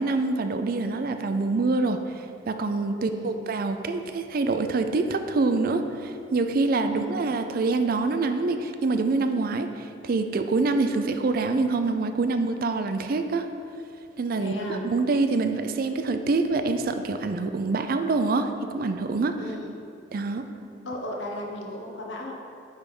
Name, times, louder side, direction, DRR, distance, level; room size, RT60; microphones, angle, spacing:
voice 1, 0.0-2.0 2.5-13.5 14.2-19.3 20.1-20.4, right 3 dB, 55° right, 8 dB, 0.4 m, -25 dB
voice 2, 2.9-3.4 6.9-7.1 14.4-14.8 19.4-19.7 20.8-22.3, left 1 dB, 80° left, -1 dB, 1.1 m, -35 dB
9.6 x 3.5 x 5.3 m, 2.5 s
head